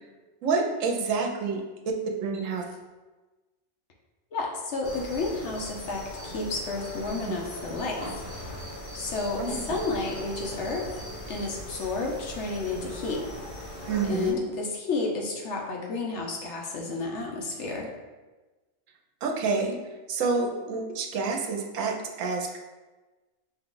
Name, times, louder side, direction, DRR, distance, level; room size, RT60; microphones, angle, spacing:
voice 1, 0.4-1.6 2.2-2.6 9.4-9.5 13.9-14.4 19.2-19.8 20.1-22.6, right 4 dB, 75° right, 1 dB, 1.0 m, -28 dB
voice 2, 4.3-8.2 8.9-10.9 11.3-13.2 14.1-17.9, left 3 dB, 65° left, 0 dB, 0.9 m, -31 dB
sound 1, 4.8-14.3, equal, 40° left, 1.5 m, -39 dB
5.0 x 2.3 x 3.8 m, 1.2 s
omnidirectional pair, 1.4 m